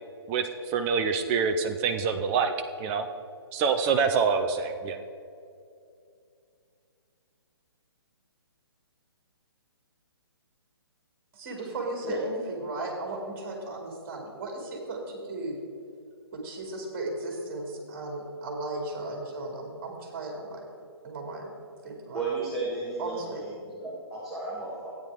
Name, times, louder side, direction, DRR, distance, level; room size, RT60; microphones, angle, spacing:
voice 1, 0.3-2.5 2.8-3.1 3.5-5.0, right 5 dB, 15° right, 6 dB, 0.4 m, -26 dB
voice 2, 11.3-15.6 16.3-20.7 21.0-21.5 21.8-22.2 23.0-23.4, right 2 dB, 35° right, 0 dB, 2.7 m, -36 dB
voice 3, 22.1-23.3 23.6-24.9, right 3 dB, ahead, -8 dB, 1.7 m, -33 dB
13.5 x 9.2 x 3.7 m, 2.5 s
figure-of-eight pair, 130°, 14 cm